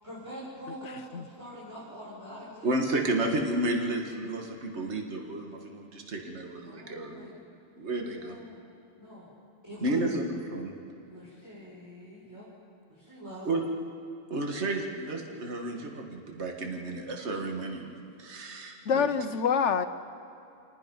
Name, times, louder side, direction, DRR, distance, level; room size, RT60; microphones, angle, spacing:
voice 1, 0.0-2.8 6.6-7.3 8.0-8.6 9.0-9.3 9.6-10.2 11.1-12.5 12.9-13.5, equal, 15° right, -9 dB, 5.7 m, -44 dB
voice 2, 2.6-7.3 7.8-8.4 9.8-10.7 13.5-13.6 14.3-19.1, right 2 dB, 60° right, 2 dB, 2.0 m, -32 dB
voice 3, 18.8-19.9, left 6 dB, 65° left, 11 dB, 1.2 m, -25 dB
28.0 x 19.5 x 5.4 m, 2.9 s
omnidirectional pair, 1.3 m